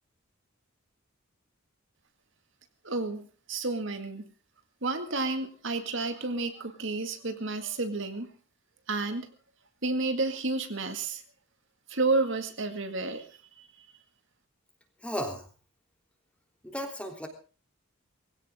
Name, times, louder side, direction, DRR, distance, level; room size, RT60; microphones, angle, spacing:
voice 1, 2.8-4.2 4.8-8.3 8.9-9.3 9.8-11.2 11.9-13.3 13.6-13.7, right 3 dB, 60° right, 7 dB, 2.0 m, -31 dB
voice 2, 15.0-15.5 16.6-17.3, equal, 5° left, 4 dB, 3.4 m, -34 dB
21.0 x 16.5 x 3.7 m, 0.37 s
head